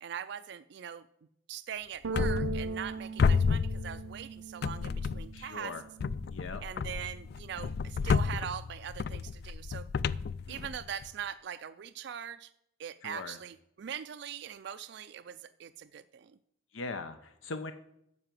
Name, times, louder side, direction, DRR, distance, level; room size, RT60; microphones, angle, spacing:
voice 1, 0.0-1.0 1.5-5.7 6.6-9.9 10.5-12.5 12.8-16.3, right 8 dB, 60° right, 11 dB, 0.4 m, -41 dB
sound 1, 2.0-6.6 6.9-8.3, right 4 dB, 85° right, 0.7 m, -41 dB
sound 2, 2.1-2.9 3.2-4.3 4.6-5.5 6.0-11.1, left 5 dB, 50° left, 0.3 m, -31 dB
voice 2, 5.3-5.8 6.3-6.6 10.5-10.8 13.0-13.4 16.7-17.7, left 3 dB, 80° left, 9 dB, 0.7 m, -40 dB
9.7 x 5.7 x 7.5 m, 0.77 s
head